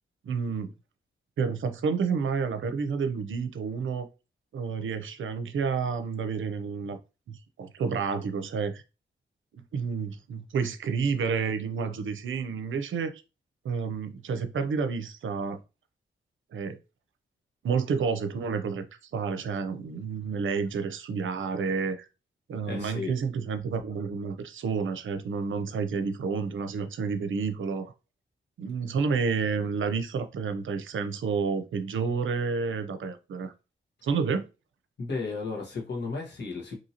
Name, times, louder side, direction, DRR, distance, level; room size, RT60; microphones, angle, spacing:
voice 1, 0.2-0.7 1.4-4.1 4.5-7.0 7.3-8.8 9.7-13.2 13.6-15.6 16.5-16.8 17.6-18.8 19.1-22.1 22.5-27.9 28.6-33.5 34.0-34.4, right 5 dB, 70° right, 0.5 m, -30 dB
voice 2, 22.6-23.1 35.0-36.8, left 4 dB, 55° left, 1.2 m, -34 dB
2.8 x 2.7 x 2.8 m
cardioid pair, 60°, 21 cm